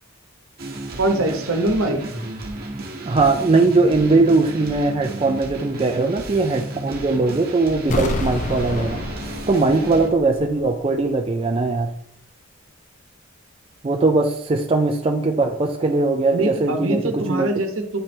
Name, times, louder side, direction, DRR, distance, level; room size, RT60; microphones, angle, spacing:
sound 1, 0.6-10.1, right 2 dB, 45° right, 1.0 m, -33 dB
voice 1, 1.0-2.0 16.3-18.0, right 2 dB, 70° right, 5 dB, 0.9 m, -23 dB
voice 2, 3.0-9.0 9.5-11.9 13.8-17.5, right 3 dB, 25° right, 3 dB, 0.3 m, -20 dB
sound 2, 7.9-10.8 11.0-11.1, left 2 dB, 35° left, 0.5 m, -28 dB
8.6 x 3.2 x 4.3 m, 0.74 s
head